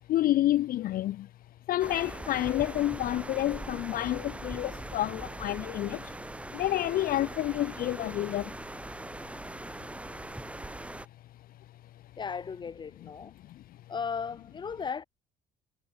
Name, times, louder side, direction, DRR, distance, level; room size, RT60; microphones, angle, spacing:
voice 1, 0.1-1.3 1.7-6.1 6.5-8.6 13.5-13.6, left 14 dB, 60° left, 0.5 m, -29 dB
sound 1, 1.8-11.1, right 1 dB, 5° right, 0.8 m, -41 dB
voice 2, 12.2-13.3 13.9-15.0, left 6 dB, 25° left, 0.9 m, -36 dB
cardioid pair, 110°, 17 cm